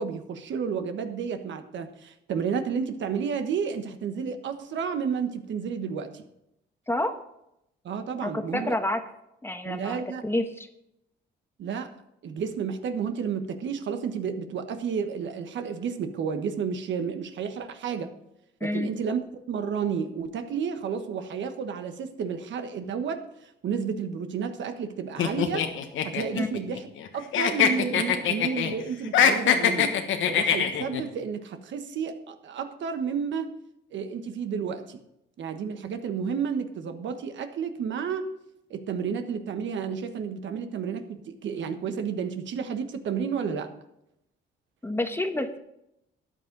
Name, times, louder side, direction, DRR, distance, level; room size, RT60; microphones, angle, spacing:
voice 1, 0.0-6.2 7.8-8.8 9.6-10.2 11.6-11.9 12.2-18.1 18.6-19.2 19.5-25.6 26.0-26.9 27.1-30.0 30.3-33.5 33.9-35.0 35.4-38.3 38.7-43.7, right 6 dB, 70° right, 8 dB, 1.2 m, -31 dB
voice 2, 8.2-9.0 9.4-10.7 18.6-18.9 26.3-26.5 44.8-45.6, left 1 dB, 10° left, 7 dB, 1.1 m, -28 dB
sound 1, 25.2-27.1 27.3-28.7 29.0-31.0, left 8 dB, 80° left, 1.3 m, -23 dB
13.5 x 9.3 x 3.9 m, 0.81 s
cardioid pair, 90°, 20 cm